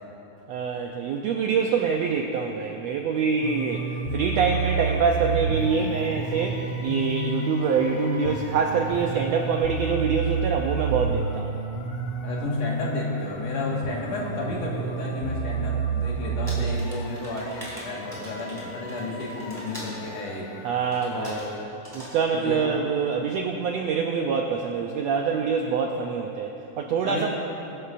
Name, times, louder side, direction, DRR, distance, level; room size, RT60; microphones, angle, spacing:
voice 1, 0.5-11.5 20.6-21.5 21.9-27.3, right 5 dB, 85° right, 2 dB, 1.5 m, -25 dB
sound 1, 3.4-21.6, right 4 dB, 75° left, 1.1 m, -30 dB
voice 2, 12.2-20.5 21.1-21.5 22.3-22.7 27.0-27.3, left 2 dB, 55° left, -3 dB, 2.7 m, -32 dB
sound 2, 16.5-20.0 20.9-21.5 21.8-22.2, equal, 5° right, 2.9 m, -42 dB
21.0 x 11.5 x 2.5 m, 2.9 s
omnidirectional pair, 3.7 m